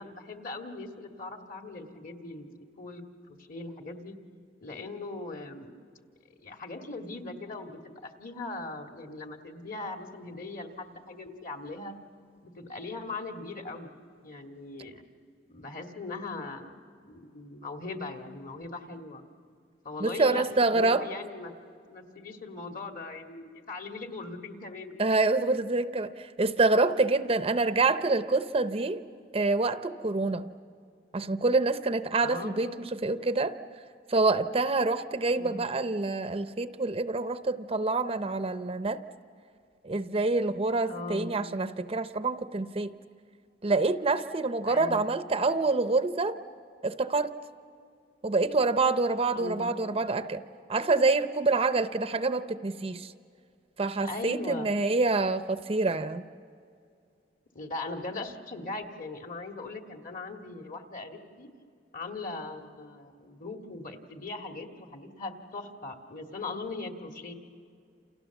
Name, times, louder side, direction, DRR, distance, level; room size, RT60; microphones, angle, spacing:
voice 1, 0.0-2.5 2.8-3.0 3.3-4.2 4.6-5.7 6.4-11.9 12.4-13.9 14.2-15.0 15.5-16.8 17.1-19.2 19.8-20.4 20.7-21.5 21.9-25.1 32.2-32.9 35.3-35.6 40.9-41.4 44.7-45.1 49.3-50.1 54.0-54.7 57.5-61.5 61.9-67.3, left 3 dB, 50° left, 4 dB, 2.0 m, -40 dB
voice 2, 20.0-21.0 25.0-29.0 29.3-30.5 31.1-33.5 34.1-39.0 39.8-42.9 43.6-46.4 46.8-47.3 48.2-50.4 50.7-53.1 53.8-56.2, right 3 dB, 35° right, 11 dB, 0.6 m, -26 dB
29.0 x 28.5 x 7.1 m, 2.3 s
head